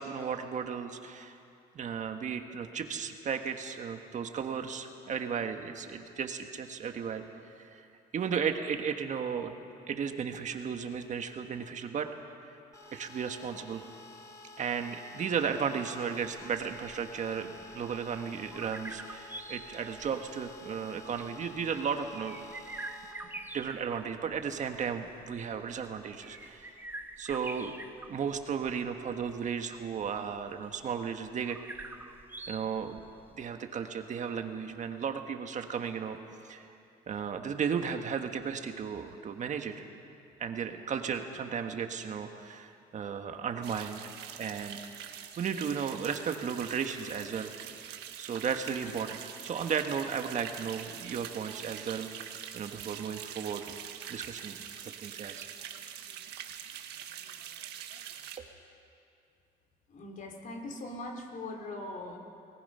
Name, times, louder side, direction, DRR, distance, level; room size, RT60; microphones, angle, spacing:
voice 1, 0.0-1.3 1.7-7.9 8.1-9.5 9.9-12.1 12.9-13.8 14.6-22.8 23.5-26.7 27.2-27.7 28.1-31.6 32.5-33.0 33.4-36.2 36.4-36.7 37.1-39.7 40.4-44.8 45.4-47.5 48.2-52.1 52.5-53.8 54.1-54.6 54.8-55.5 58.4-58.5, right 7 dB, 45° right, 6 dB, 1.5 m, -35 dB
sound 1, 12.7-23.1, left 3 dB, 20° left, 3.6 m, -51 dB
sound 2, 16.4-33.5, right 2 dB, 10° right, 1.4 m, -46 dB
sound 3, 43.6-58.4, right 10 dB, 85° right, 1.6 m, -44 dB
voice 2, 59.9-62.2, left 2 dB, 50° left, 3 dB, 3.6 m, -41 dB
29.5 x 19.5 x 5.7 m, 2.5 s
cardioid pair, 110°, 17 cm